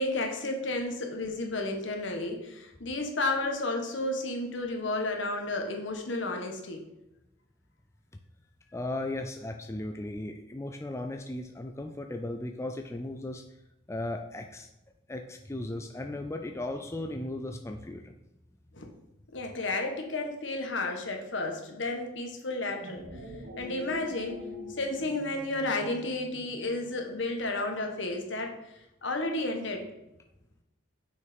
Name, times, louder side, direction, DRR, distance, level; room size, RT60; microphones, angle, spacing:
voice 1, 0.0-6.8 18.7-18.9 19.3-23.0 23.6-24.4 24.7-28.5 29.0-29.9, left 2 dB, 65° left, 2 dB, 1.4 m, -32 dB
voice 2, 8.7-13.4 13.9-14.7 15.1-18.2, left 1 dB, 15° left, 4 dB, 0.4 m, -36 dB
sound 1, 22.6-27.2, left 1 dB, 85° right, 2.3 m, -44 dB
6.4 x 5.7 x 5.3 m, 0.91 s
head